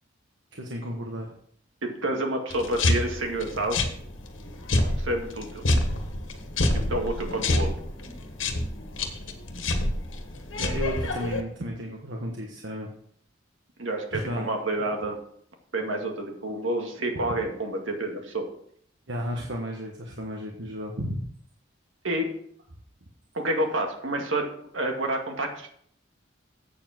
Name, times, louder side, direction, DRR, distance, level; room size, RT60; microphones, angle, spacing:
voice 1, 0.5-1.3 10.6-12.9 14.1-14.5 19.1-21.2, equal, 65° right, 0 dB, 1.3 m, -33 dB
voice 2, 1.8-3.8 4.8-5.6 6.7-7.7 13.8-15.2 15.7-18.5 22.0-22.3 23.3-24.5 24.7-25.7, right 1 dB, 85° right, 2 dB, 2.0 m, -29 dB
sound 1, 2.5-11.4, left 1 dB, 85° left, 1.6 m, -28 dB
8.5 x 7.2 x 6.0 m, 0.64 s
head